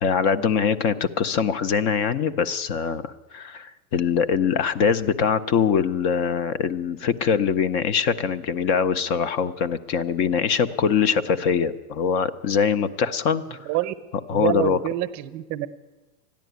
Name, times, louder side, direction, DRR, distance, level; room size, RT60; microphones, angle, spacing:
voice 1, 0.0-13.6 14.3-14.8, left 6 dB, 35° left, 13 dB, 0.6 m, -23 dB
voice 2, 13.6-13.9 14.3-15.7, right 15 dB, 35° right, 12 dB, 0.8 m, -26 dB
13.5 x 10.5 x 9.3 m, 1.2 s
supercardioid pair, 130°, 47 cm